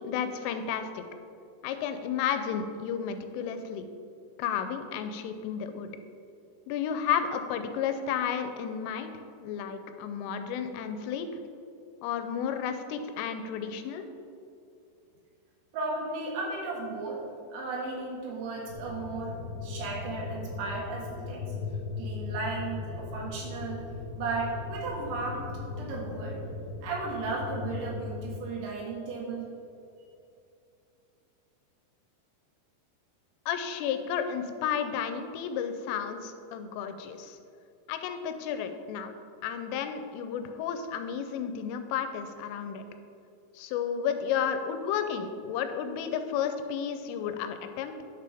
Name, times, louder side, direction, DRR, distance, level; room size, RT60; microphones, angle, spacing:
voice 1, 0.0-1.0 1.6-3.9 4.4-5.9 6.7-9.1 9.4-11.3 12.0-14.0 33.5-37.4 37.9-39.1 39.4-42.8 43.6-48.0, left 8 dB, 90° left, 8 dB, 3.2 m, -32 dB
voice 2, 15.7-17.2 17.5-19.4 19.6-21.4 22.0-23.9 24.2-25.5 25.8-26.4 26.8-29.5, right 3 dB, 70° right, -4 dB, 3.7 m, -35 dB
sound 1, 18.7-28.4, left 4 dB, 70° left, 2.2 m, -38 dB
10.5 x 6.8 x 3.4 m, 2.6 s
omnidirectional pair, 5.6 m